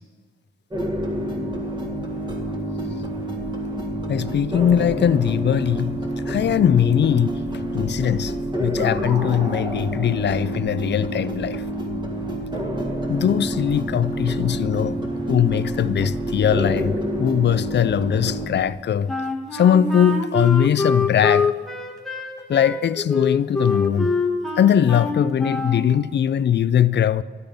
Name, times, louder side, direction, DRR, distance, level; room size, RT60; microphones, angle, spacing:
sound 1, 0.7-18.5, right 1 dB, 25° right, 1.8 m, -28 dB
voice 1, 4.1-7.4 7.7-8.3 8.6-11.6 13.1-15.0 15.3-16.9 17.2-19.1 19.5-21.5 22.5-24.1 24.6-27.2, left 9 dB, 60° left, 0.4 m, -20 dB
Wind instrument woodwind instrument, 19.1-25.9, left 3 dB, ahead, 1.3 m, -25 dB
12.5 x 12.0 x 5.2 m
wide cardioid pair, 155°, 20 cm